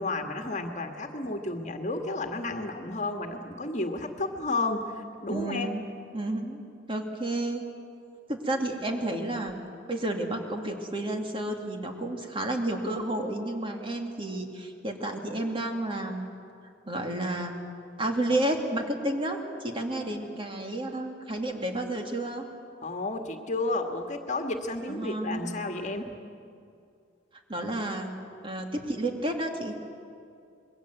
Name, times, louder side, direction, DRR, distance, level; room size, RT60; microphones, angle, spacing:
voice 1, 0.0-5.7 22.8-26.1, left 2 dB, 40° left, 4 dB, 1.8 m, -32 dB
voice 2, 5.3-5.8 6.1-6.6 6.9-7.6 8.3-9.6 9.9-16.4 16.9-17.5 18.0-22.5 24.9-25.5 27.5-28.1 28.4-29.8, right 1 dB, 30° right, 3 dB, 2.6 m, -31 dB
27.0 x 22.0 x 7.9 m, 2.5 s
head